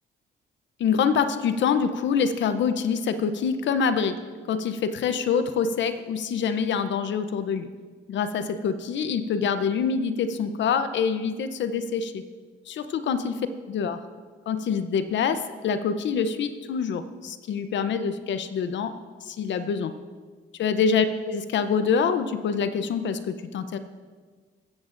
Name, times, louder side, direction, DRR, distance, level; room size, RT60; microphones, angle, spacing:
voice 1, 0.8-4.2 4.5-7.7 8.1-12.2 12.7-13.4 13.7-14.0 14.5-19.0 19.2-19.9 20.6-23.8, left 6 dB, 65° left, 10 dB, 0.7 m, -25 dB
15.0 x 13.5 x 2.6 m, 1.5 s
cardioid pair, 90°, 20 cm